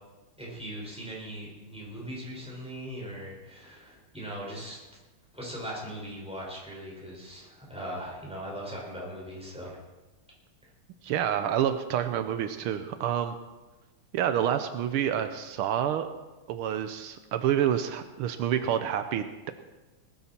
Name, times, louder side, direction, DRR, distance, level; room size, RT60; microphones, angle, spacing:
voice 1, 0.4-4.8 5.3-9.8, equal, ahead, -5 dB, 5.1 m, -39 dB
voice 2, 11.0-13.3 14.1-16.1 16.5-19.5, right 10 dB, 80° right, 9 dB, 1.6 m, -28 dB
19.5 x 12.5 x 4.4 m, 1.2 s
omnidirectional pair, 2.4 m